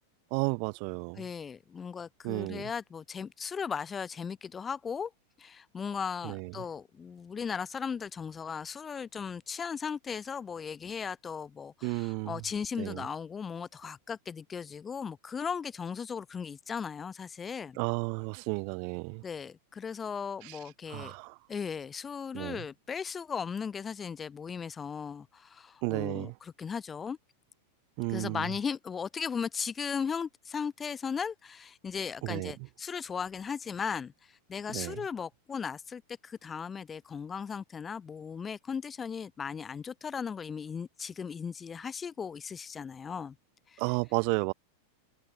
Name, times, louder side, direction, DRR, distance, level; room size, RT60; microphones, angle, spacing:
voice 1, 0.3-1.3 2.2-2.7 6.2-6.5 11.8-12.4 12.8-13.1 17.8-19.2 20.4-20.6 20.9-21.4 22.3-22.6 25.8-26.3 28.0-28.5 32.2-32.5 34.7-35.0 43.8-44.5, right 40 dB or more, 45° right, 1.0 m, -33 dB
voice 2, 1.2-5.1 5.4-17.8 19.2-21.1 21.5-27.2 28.1-43.3 43.7-43.8, left 6 dB, 20° left, 0.4 m, -37 dB
figure-of-eight pair, 90°, 0 cm